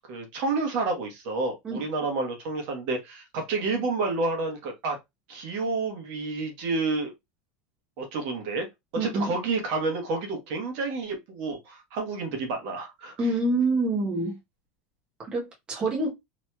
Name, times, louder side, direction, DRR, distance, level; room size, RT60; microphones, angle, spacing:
voice 1, 0.1-5.0 5.3-7.1 8.0-8.7 9.0-13.1, right 3 dB, 50° right, 1.1 m, -29 dB
voice 2, 9.0-9.3 13.2-14.4 15.2-16.1, right 2 dB, 20° right, 0.9 m, -26 dB
2.9 x 2.9 x 2.2 m
supercardioid pair, 160°, 5 cm